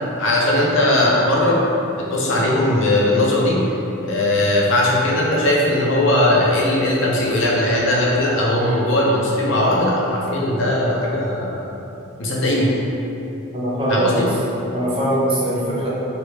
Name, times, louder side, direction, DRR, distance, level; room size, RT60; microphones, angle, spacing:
voice 1, 0.2-1.6 2.1-3.6 4.0-11.7 12.2-12.7 13.9-14.3, left 1 dB, 75° left, -4 dB, 0.6 m, -18 dB
voice 2, 13.5-14.3 14.7-15.9, right 1 dB, 25° right, -6 dB, 0.5 m, -21 dB
3.3 x 2.9 x 3.1 m, 2.9 s
head